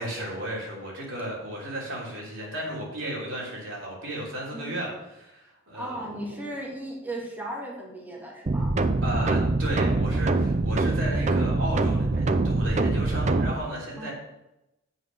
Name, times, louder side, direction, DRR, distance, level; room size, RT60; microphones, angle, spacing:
voice 1, 0.0-6.4 9.0-14.1, right 1 dB, 80° right, -4 dB, 3.2 m, -34 dB
voice 2, 5.7-8.7 14.0-14.1, right 1 dB, 10° right, -3 dB, 1.9 m, -36 dB
sound 1, 8.5-13.5, right 2 dB, 35° right, 0.5 m, -24 dB
8.0 x 5.5 x 6.4 m, 0.92 s
head